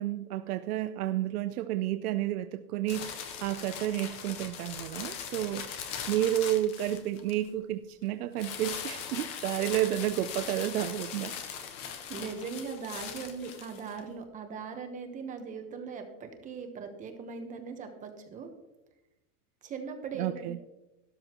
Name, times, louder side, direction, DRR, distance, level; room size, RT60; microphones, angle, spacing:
voice 1, 0.0-5.7 6.1-11.3 20.1-20.6, right 13 dB, 75° right, 10 dB, 0.7 m, -31 dB
sound 1, 2.9-7.5 8.4-14.0, left 7 dB, 15° left, 0.4 m, -40 dB
voice 2, 11.7-18.5 19.6-20.6, right 5 dB, 15° right, 6 dB, 1.1 m, -40 dB
13.0 x 12.5 x 3.0 m, 0.95 s
supercardioid pair, 165°, 46 cm